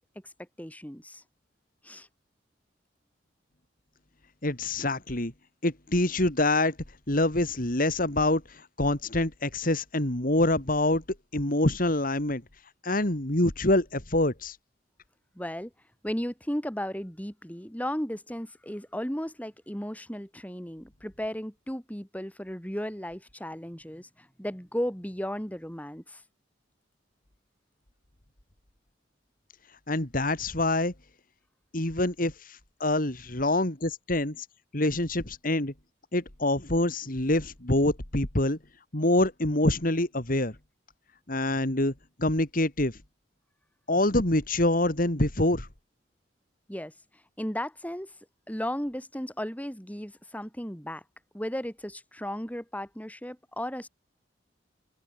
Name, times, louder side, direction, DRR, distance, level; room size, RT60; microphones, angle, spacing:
voice 1, 0.6-1.2 1.8-2.1 15.4-15.7 16.0-26.2 46.7-46.9 47.4-48.1 48.5-51.0 51.3-53.9, equal, 10° left, 5.4 m, -35 dB
voice 2, 4.4-5.3 5.6-6.7 7.1-11.0 11.3-12.4 12.8-14.6 29.9-30.9 31.7-34.5 34.7-35.7 36.1-38.6 38.9-40.5 41.3-41.9 42.2-43.0 43.9-45.7, left 1 dB, 50° left, 2.9 m, -26 dB
open air
head